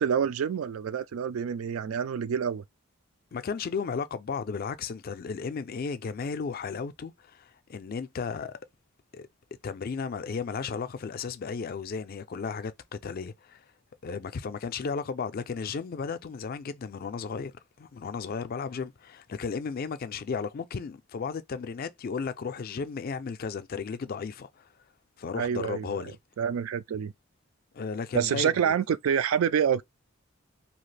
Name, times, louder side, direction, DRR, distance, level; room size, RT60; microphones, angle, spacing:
voice 1, 0.0-2.6 25.4-26.0 26.4-27.1 28.1-29.8, right 7 dB, 85° right, 0.3 m, -27 dB
voice 2, 3.3-8.6 9.1-9.3 9.6-13.6 14.0-17.5 17.8-24.7 25.2-26.2 27.7-28.7, left 5 dB, 45° left, 0.3 m, -34 dB
2.8 x 2.4 x 3.2 m
head